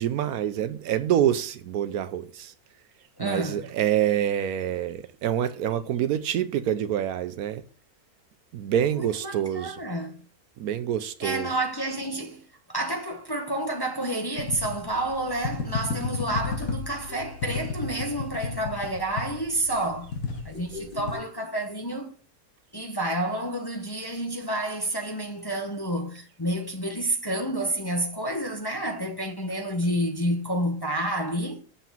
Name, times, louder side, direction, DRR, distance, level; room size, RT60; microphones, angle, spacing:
voice 1, 0.0-2.5 3.2-7.6 8.5-9.8 10.6-11.5, right 10 dB, 70° right, 1.1 m, -26 dB
voice 2, 3.2-3.7 9.0-10.2 11.2-12.4 12.7-20.1 20.4-22.1 22.7-31.6, right 1 dB, 20° left, 0.8 m, -29 dB
sound 1, 14.4-21.1, left 4 dB, 60° left, 1.6 m, -33 dB
sound 2, 17.1-19.0 20.5-22.0, left 3 dB, 30° right, 2.3 m, -45 dB
7.0 x 5.8 x 7.2 m
omnidirectional pair, 1.7 m